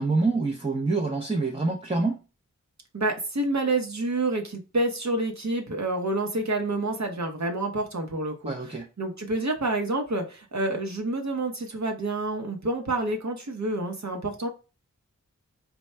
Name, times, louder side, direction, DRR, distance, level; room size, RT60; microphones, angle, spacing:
voice 1, 0.0-2.2 8.5-8.9, right 3 dB, 20° right, 0.6 m, -26 dB
voice 2, 2.9-8.5 9.0-14.5, right 2 dB, 60° right, 0.9 m, -28 dB
4.3 x 2.2 x 3.3 m
wide cardioid pair, 55°, 31 cm